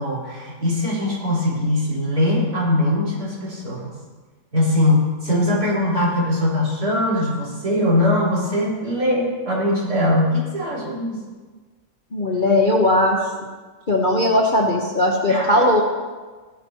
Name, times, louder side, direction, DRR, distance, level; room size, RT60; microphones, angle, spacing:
voice 1, 0.0-3.9 4.5-11.2 15.3-15.7, left 1 dB, 65° right, -7 dB, 4.8 m, -21 dB
voice 2, 12.1-13.2 13.9-15.8, left 1 dB, 35° left, -1 dB, 1.0 m, -18 dB
16.5 x 12.0 x 3.0 m, 1.4 s
omnidirectional pair, 1.8 m